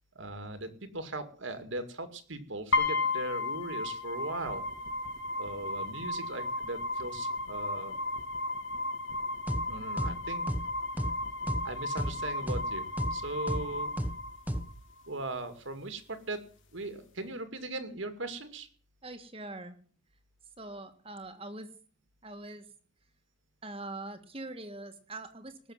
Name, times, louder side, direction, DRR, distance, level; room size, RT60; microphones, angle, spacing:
voice 1, 0.2-4.6 5.4-7.9 9.7-10.5 11.6-13.9 15.1-16.4 16.7-18.7, right 2 dB, 70° right, 9 dB, 2.3 m, -39 dB
sound 1, 2.7-14.7, left 2 dB, 70° left, 2.9 m, -34 dB
sound 2, 9.5-9.6 10.0-10.1 10.5-10.6 11.0-11.1 11.5-11.6 12.0-12.1 12.5-12.6 13.0-13.1 13.5-13.6 14.0-14.1 14.5-14.6, equal, 10° right, 1.1 m, -32 dB
voice 2, 19.0-19.8 20.6-21.7 22.2-22.6 23.6-25.7, right 2 dB, 30° right, 7 dB, 1.6 m, -43 dB
19.0 x 7.1 x 7.4 m, 0.42 s
head